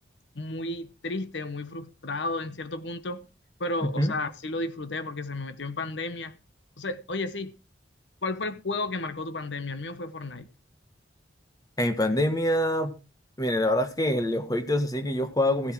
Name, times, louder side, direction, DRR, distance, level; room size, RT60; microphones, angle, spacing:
voice 1, 0.3-3.3 3.6-6.3 6.8-7.5 8.2-10.5, left 2 dB, 80° left, 1.0 m, -33 dB
voice 2, 3.8-4.1 11.8-12.9 13.4-15.7, left 1 dB, 20° left, 1.5 m, -25 dB
15.0 x 8.0 x 4.6 m
head